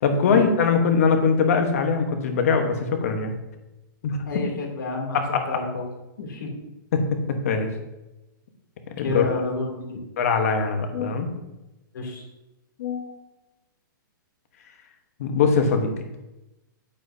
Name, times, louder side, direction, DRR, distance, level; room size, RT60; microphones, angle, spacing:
voice 1, 0.0-3.3 4.0-4.2 5.1-5.4 6.9-7.0 7.4-7.7 9.0-9.2 10.2-11.3 12.8-13.2 15.2-15.9, left 5 dB, 45° left, 5 dB, 1.3 m, -22 dB
voice 2, 4.3-5.9 6.2-6.5 9.0-10.0 11.9-12.2, left 3 dB, 65° left, 0 dB, 2.9 m, -30 dB
10.0 x 8.8 x 2.8 m, 0.97 s
hypercardioid pair, 180°, 11 cm